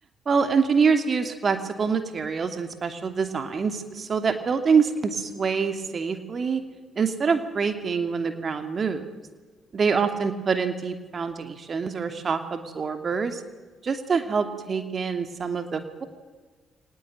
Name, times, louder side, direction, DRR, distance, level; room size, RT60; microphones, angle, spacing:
voice 1, 0.3-6.6 6.9-9.1 9.7-13.4 13.8-16.1, right 5 dB, 45° right, 7 dB, 2.9 m, -25 dB
24.5 x 19.5 x 9.1 m, 1.4 s
figure-of-eight pair, 45°, 0 cm